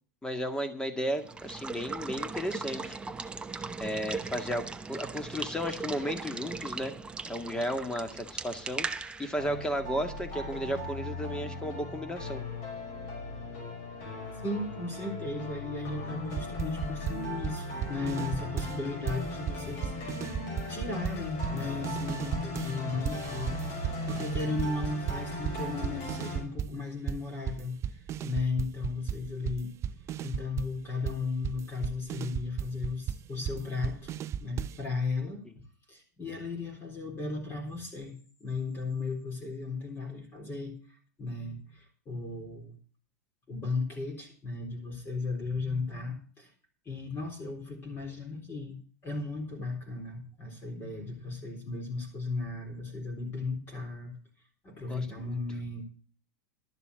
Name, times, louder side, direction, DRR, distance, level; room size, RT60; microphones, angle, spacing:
voice 1, 0.2-3.0 3.8-7.0 7.3-8.9 9.2-12.4 54.9-55.4, equal, 10° left, 8 dB, 1.9 m, -34 dB
Water / Water tap faucet / Liquid, 1.1-10.8, right 4 dB, 10° right, 0.9 m, -39 dB
sound 1, 9.4-26.4, left 2 dB, 55° left, 5.2 m, -37 dB
voice 2, 14.3-20.2 20.7-29.7 30.2-34.1 34.4-35.4 35.9-38.1 38.4-42.8 43.5-46.5 46.9-48.8 49.0-54.1 54.6-55.8, left 3 dB, 25° left, 2 dB, 3.9 m, -35 dB
sound 2, 16.3-18.8 19.1-22.8 23.0-26.8 27.1-34.9, right 9 dB, 30° right, 0.6 m, -35 dB
12.0 x 6.7 x 8.2 m, 0.41 s
hypercardioid pair, 115°, 9 cm